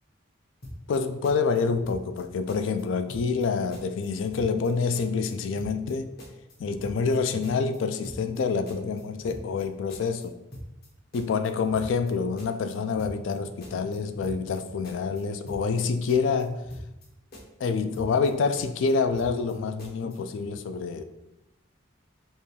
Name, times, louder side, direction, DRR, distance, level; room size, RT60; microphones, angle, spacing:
sound 1, 0.6-2.2 2.5-2.8 3.1-3.5 3.7-4.7 4.9-5.3 5.6-5.9 6.2-7.2 7.4-7.8 8.0-8.4 8.7-9.6 9.9-10.3 10.5-10.9 11.1-12.1 12.4-12.7 13.0-13.4 13.6-14.6 14.8-15.2 15.5-15.8 16.1-17.1 17.3-17.7 17.9-18.3 18.6-19.5 19.8-20.2, equal, 50° left, 0.9 m, -43 dB
voice 1, 0.9-6.1 6.6-10.4 11.1-16.6 17.6-21.0, left 5 dB, 75° left, 0.3 m, -27 dB
5.3 x 2.3 x 3.2 m
head